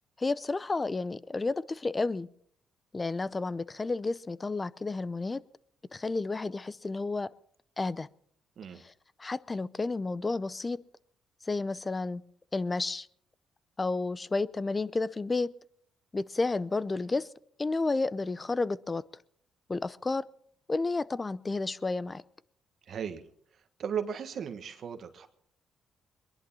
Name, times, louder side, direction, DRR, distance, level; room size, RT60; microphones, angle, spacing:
voice 1, 0.2-2.3 2.9-5.4 5.9-7.3 7.8-8.1 8.8-8.9 9.2-10.8 11.5-12.2 12.5-13.1 13.8-15.5 16.1-17.3 17.6-19.0 19.7-20.2 20.7-22.2, left 3 dB, 25° left, 19 dB, 0.6 m, -31 dB
voice 2, 22.9-23.2 23.8-25.3, right 7 dB, 60° right, 8 dB, 1.4 m, -36 dB
22.5 x 11.0 x 5.6 m, 0.65 s
cardioid pair, 90°, 0 cm